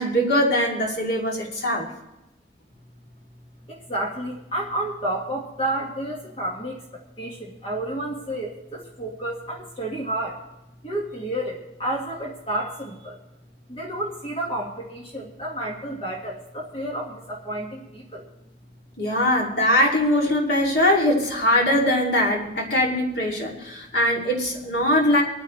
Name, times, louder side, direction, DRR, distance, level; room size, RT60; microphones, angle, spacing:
voice 1, 0.0-1.9 19.0-25.2, left 1 dB, 70° left, -1 dB, 2.6 m, -21 dB
voice 2, 3.7-10.4 10.8-13.2 13.7-18.3, right 1 dB, 30° left, -2 dB, 1.7 m, -31 dB
27.0 x 9.6 x 3.2 m, 0.95 s
head